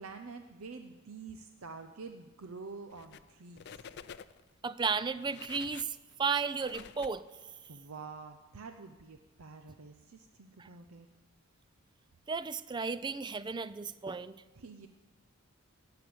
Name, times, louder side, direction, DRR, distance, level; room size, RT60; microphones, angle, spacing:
voice 1, 0.0-3.8 7.7-11.1 14.6-14.9, right 4 dB, 75° right, 7 dB, 0.7 m, -47 dB
sound 1, 2.9-3.3 3.6-4.5 5.0-7.7, left 7 dB, 50° left, 0.4 m, -50 dB
voice 2, 4.6-7.2 10.6-10.7 12.3-14.4, right 5 dB, 20° right, 15 dB, 0.4 m, -34 dB
17.5 x 6.8 x 7.7 m, 1.2 s
head